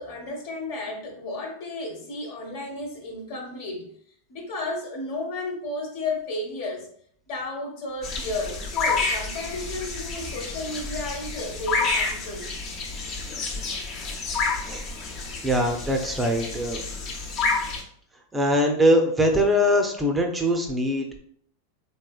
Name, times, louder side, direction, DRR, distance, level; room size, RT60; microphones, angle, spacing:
voice 1, 0.0-3.9 4.3-6.9 7.3-12.5, left 2 dB, 65° left, 0 dB, 1.1 m, -33 dB
sound 1, 8.0-17.8, left 4 dB, 45° left, 0.8 m, -29 dB
voice 2, 15.4-16.8 18.3-21.2, equal, 10° right, 3 dB, 0.5 m, -22 dB
3.3 x 3.0 x 2.3 m, 0.63 s
hypercardioid pair, 115°, 0 cm